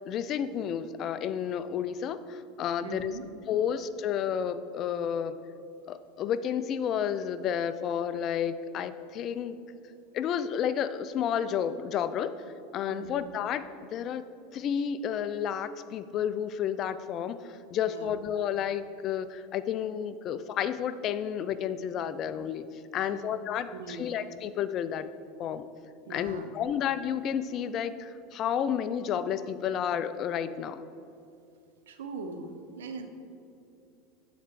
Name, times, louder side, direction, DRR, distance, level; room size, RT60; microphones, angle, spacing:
voice 1, 0.0-3.1 3.5-5.4 5.9-9.6 10.1-12.3 12.7-14.2 14.5-22.6 22.9-25.1 25.4-25.6 26.1-30.8, left 8 dB, 45° left, 13 dB, 0.4 m, -31 dB
voice 2, 2.8-3.2 12.9-13.3 17.9-18.1 23.0-23.3 23.7-24.1 26.1-26.5 31.9-33.1, right 4 dB, 90° right, 7 dB, 0.6 m, -41 dB
8.0 x 4.3 x 4.8 m, 2.6 s
supercardioid pair, 105°, 0 cm